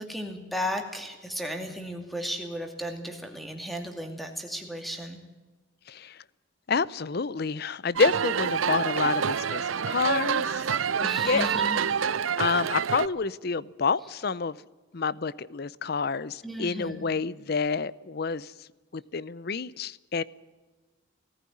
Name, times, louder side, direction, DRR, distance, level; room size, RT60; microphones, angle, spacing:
voice 1, 0.0-5.2 11.0-11.9 16.4-17.0, equal, ahead, 4 dB, 2.4 m, -35 dB
voice 2, 5.9-6.2 6.7-10.7 11.0-11.5 12.4-14.6 14.9-18.5 18.9-20.2, left 5 dB, 50° left, 20 dB, 0.6 m, -28 dB
sound 1, 8.0-13.1, right 7 dB, 85° right, 0.6 m, -27 dB
19.0 x 14.5 x 9.8 m, 1.2 s
head